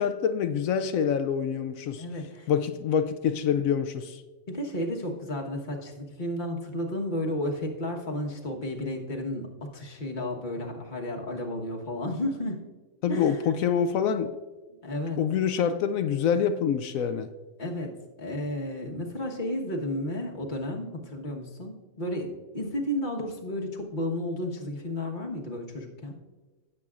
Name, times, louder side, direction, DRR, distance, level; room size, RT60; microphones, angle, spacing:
voice 1, 0.0-2.1 2.5-4.2 13.0-14.4 15.2-17.3, left 7 dB, 70° left, 0.9 m, -26 dB
voice 2, 2.0-2.5 4.5-12.6 13.1-13.4 14.8-15.2 17.6-26.1, left 1 dB, 35° left, 1.3 m, -32 dB
16.5 x 7.6 x 2.4 m
omnidirectional pair, 1.6 m